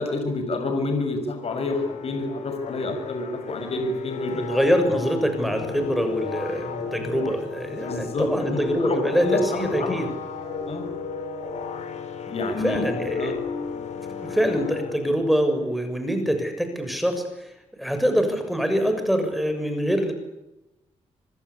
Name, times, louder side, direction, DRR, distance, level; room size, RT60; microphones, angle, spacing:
voice 1, 0.0-4.3 7.8-10.0 10.7-10.9 12.3-12.9 13.2-13.4, left 2 dB, 55° left, 6 dB, 6.6 m, -28 dB
sound 1, 1.4-15.5, left 6 dB, 75° left, 6.1 m, -34 dB
voice 2, 4.3-10.1 12.4-13.4 14.2-17.5 17.8-20.1, equal, ahead, 6 dB, 6.9 m, -24 dB
25.5 x 25.5 x 8.5 m, 0.94 s
cardioid pair, 100°, 12 cm